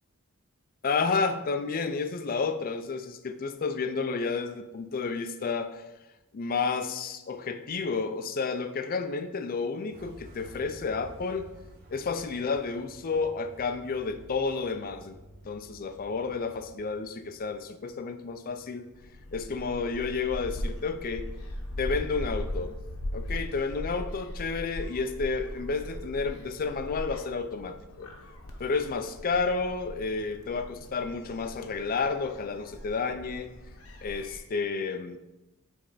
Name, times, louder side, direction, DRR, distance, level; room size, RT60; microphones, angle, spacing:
voice 1, 0.8-5.8 6.3-11.5 11.9-15.2 15.5-18.9 19.3-21.3 21.8-22.8 23.1-28.1 28.6-33.5 34.0-35.2, left 4 dB, 40° left, 9 dB, 0.4 m, -31 dB
sound 1, 9.9-19.6, right 1 dB, 45° right, 1.3 m, -52 dB
Gull seagull, 18.9-34.4, left 1 dB, 65° left, 0.9 m, -39 dB
8.1 x 3.4 x 4.0 m, 1.0 s
head